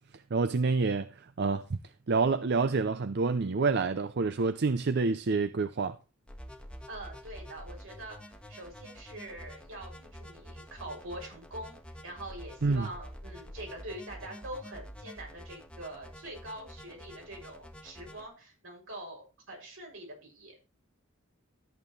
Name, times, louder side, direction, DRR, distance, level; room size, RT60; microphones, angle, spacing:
voice 1, 0.3-1.1 1.4-1.8 2.1-6.0 12.6-12.9, right 4 dB, 55° right, 0.5 m, -27 dB
sound 1, 6.3-18.2, equal, 5° left, 1.7 m, -47 dB
voice 2, 6.9-11.8 12.0-20.5, right 1 dB, 75° right, 6.8 m, -44 dB
13.5 x 9.0 x 3.2 m
head